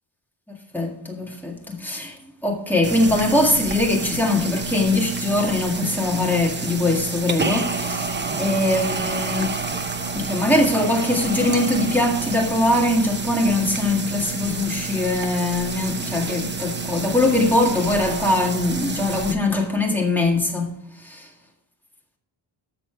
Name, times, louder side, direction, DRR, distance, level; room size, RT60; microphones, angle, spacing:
voice 1, 0.7-2.2 2.4-9.6 10.1-20.7 21.0-21.3, left 2 dB, 5° left, 1.9 m, -22 dB
sound 1, 2.8-19.3, right 4 dB, 25° right, 0.8 m, -29 dB
13.5 x 6.0 x 4.6 m
wide cardioid pair, 165°, 48 cm